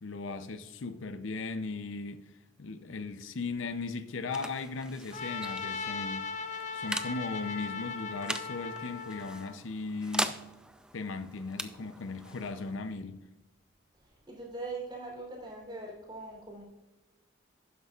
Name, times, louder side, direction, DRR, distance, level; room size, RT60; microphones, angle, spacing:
voice 1, 0.0-2.3 2.6-6.3 6.7-10.4 10.9-13.2, left 3 dB, 70° left, 0.6 m, -37 dB
sound 1, 3.6-14.9, right 1 dB, 5° right, 0.4 m, -42 dB
Trumpet, 5.1-9.5, left 5 dB, 35° left, 0.8 m, -38 dB
voice 2, 14.3-16.6, right 3 dB, 20° right, 3.5 m, -41 dB
12.0 x 9.5 x 2.4 m
head